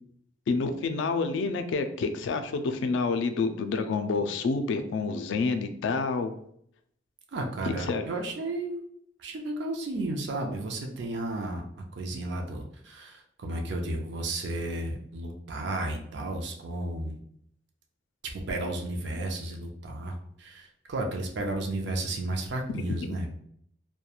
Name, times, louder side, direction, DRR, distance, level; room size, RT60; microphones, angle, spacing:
voice 1, 0.5-6.3 7.9-8.0, left 4 dB, 75° left, 8 dB, 0.3 m, -28 dB
voice 2, 7.3-8.8 9.2-17.2 18.3-23.4, right 2 dB, 65° right, 2 dB, 0.4 m, -33 dB
2.9 x 2.2 x 2.3 m, 0.67 s
head